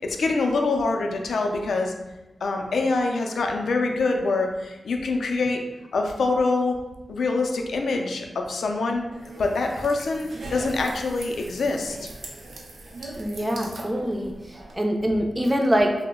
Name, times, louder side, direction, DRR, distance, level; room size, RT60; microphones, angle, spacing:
voice 1, 0.0-1.9 2.4-5.6 5.9-6.8 7.1-9.0 9.4-12.1, left 3 dB, 85° left, 3 dB, 0.3 m, -25 dB
sound 1, 9.1-14.7, right 2 dB, 85° right, 0.5 m, -40 dB
voice 2, 13.2-15.9, equal, 15° right, 2 dB, 0.3 m, -24 dB
2.8 x 2.0 x 3.4 m, 1.1 s
wide cardioid pair, 130°, 0 cm